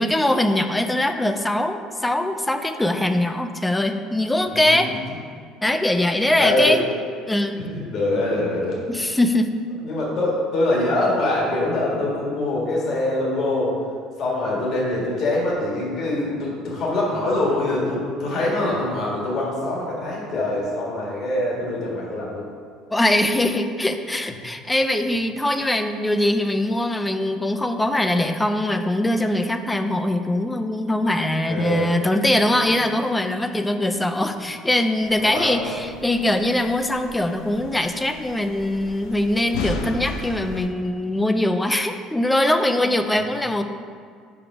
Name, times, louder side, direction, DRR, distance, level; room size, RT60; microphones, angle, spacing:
voice 1, 0.0-4.9 5.6-6.8 7.3-7.6 8.9-9.5 22.9-43.6, left 1 dB, 5° left, 8 dB, 0.3 m, -22 dB
voice 2, 4.5-5.0 6.4-6.8 7.6-8.8 9.8-13.8 14.2-22.5 31.5-31.9 35.2-35.7 43.2-43.3, left 1 dB, 45° left, -4 dB, 1.6 m, -24 dB
sound 1, 35.0-40.7, left 3 dB, 80° left, 0.6 m, -34 dB
5.2 x 4.9 x 4.9 m, 2.1 s
cardioid pair, 155°, 0 cm